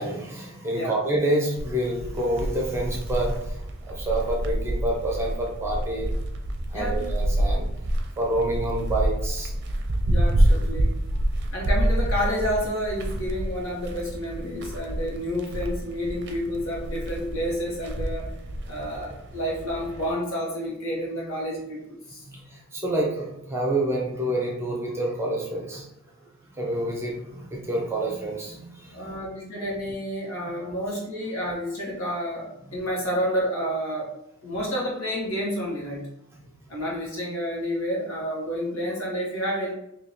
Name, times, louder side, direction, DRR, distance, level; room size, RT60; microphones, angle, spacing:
voice 1, 0.0-6.1 6.7-7.7 8.2-9.5 11.1-11.2 22.3-25.9 26.5-29.1 36.7-36.8, right 1 dB, 10° right, -2 dB, 0.7 m, -28 dB
sound 1, 1.6-20.1, right 1 dB, 55° right, 0.5 m, -28 dB
voice 2, 6.7-7.1 10.1-10.9 11.5-18.3 18.7-22.2 28.9-34.1 34.4-36.1 36.7-39.7, equal, 70° left, -4 dB, 1.5 m, -30 dB
3.0 x 2.9 x 4.1 m, 0.83 s
head